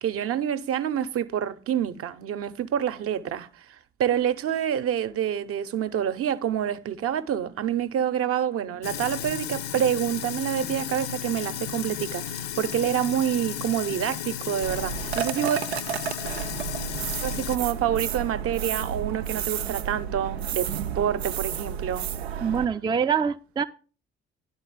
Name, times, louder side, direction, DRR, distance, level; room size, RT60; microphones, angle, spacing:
voice 1, 0.0-3.5 4.0-15.6 17.2-20.7 20.9-22.1 22.4-22.5, right 10 dB, 50° right, 0.8 m, -27 dB
Sink (filling or washing), 8.8-17.6, left 9 dB, 55° left, 0.8 m, -34 dB
sound 1, 14.6-22.6, right 9 dB, 85° right, 0.5 m, -31 dB
voice 2, 22.4-23.6, right 7 dB, 15° right, 0.4 m, -25 dB
10.5 x 4.1 x 7.1 m
figure-of-eight pair, 45°, 31 cm